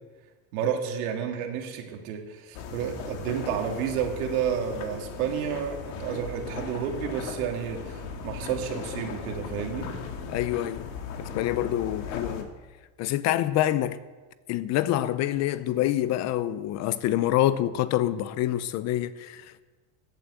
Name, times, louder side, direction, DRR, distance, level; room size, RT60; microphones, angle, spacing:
voice 1, 0.5-9.9, right 8 dB, 85° right, 2.7 m, -31 dB
sound 1, 2.5-12.4, left 6 dB, 70° left, 2.2 m, -37 dB
voice 2, 10.3-10.9 11.2-12.5 13.0-14.0 14.5-19.6, left 13 dB, 40° left, 0.6 m, -26 dB
14.0 x 9.1 x 7.9 m
cardioid pair, 150°, 42 cm